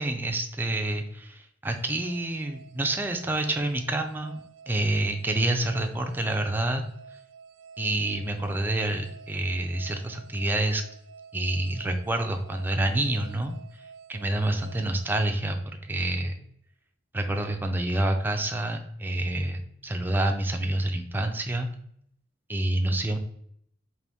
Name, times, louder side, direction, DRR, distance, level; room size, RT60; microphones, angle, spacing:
voice 1, 0.0-6.8 7.8-10.8 11.3-13.6 14.1-16.3 17.1-21.7 22.5-23.2, right 1 dB, 10° right, 4 dB, 0.4 m, -28 dB
sound 1, 1.7-16.0, right 6 dB, 80° right, 0.4 m, -51 dB
3.9 x 2.6 x 3.5 m, 0.69 s
head